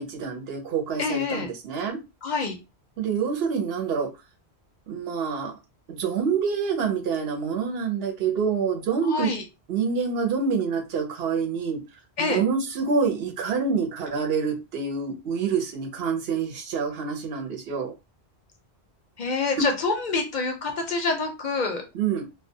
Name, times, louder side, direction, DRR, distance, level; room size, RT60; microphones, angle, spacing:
voice 1, 0.0-2.0 3.0-4.1 4.9-5.5 5.9-9.3 9.7-11.8 12.2-17.9 21.9-22.2, right 6 dB, 70° right, 0.9 m, -27 dB
voice 2, 1.0-1.5 2.2-2.6 9.0-9.4 12.2-12.4 19.2-21.8, left 4 dB, 55° left, 0.6 m, -26 dB
2.3 x 2.2 x 2.6 m
omnidirectional pair, 1.1 m